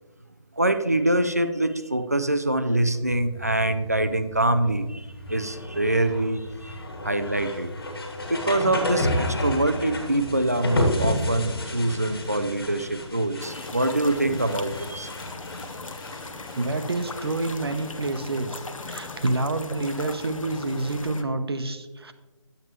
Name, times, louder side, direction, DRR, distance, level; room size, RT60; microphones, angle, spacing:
voice 1, 0.6-6.8 7.0-7.7 8.3-15.1, right 1 dB, 30° right, 10 dB, 0.4 m, -24 dB
sound 1, 3.1-21.0, left 1 dB, 45° left, 1.7 m, -32 dB
sound 2, 13.4-21.2, left 3 dB, 85° left, 1.0 m, -39 dB
voice 2, 16.5-22.1, right 2 dB, 50° right, 9 dB, 0.8 m, -28 dB
10.5 x 7.9 x 3.0 m, 1.1 s
hypercardioid pair, 180°, 17 cm